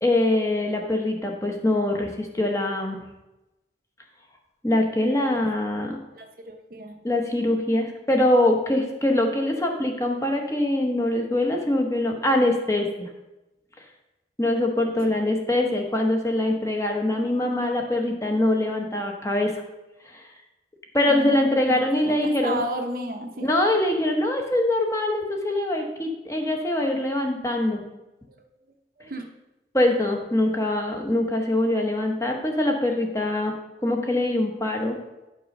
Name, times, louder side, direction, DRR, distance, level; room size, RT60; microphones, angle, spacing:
voice 1, 0.0-3.0 4.6-6.0 7.0-13.1 14.4-19.5 20.0-20.2 20.9-22.6 23.4-27.8 29.7-33.5 33.8-35.0, left 1 dB, 15° left, 2 dB, 1.0 m, -23 dB
voice 2, 6.1-7.0 21.0-21.7 22.1-23.5 28.3-28.4 29.0-29.2, right 1 dB, 50° right, 5 dB, 0.9 m, -33 dB
9.7 x 5.4 x 5.3 m, 1.0 s
head